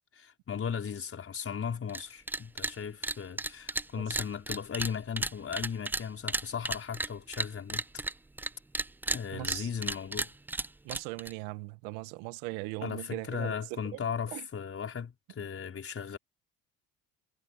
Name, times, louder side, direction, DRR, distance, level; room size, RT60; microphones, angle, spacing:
voice 1, 0.2-8.0 9.1-10.3 12.8-16.2, left 7 dB, 40° left, 5.2 m, -37 dB
sound 1, 1.9-2.0 2.3-2.7 3.0-8.5 8.7-11.3, right 2 dB, 5° right, 0.3 m, -33 dB
voice 2, 9.3-9.7 10.8-14.1 14.3-14.5, right 21 dB, 85° right, 1.9 m, -39 dB
supercardioid pair, 75°, 33 cm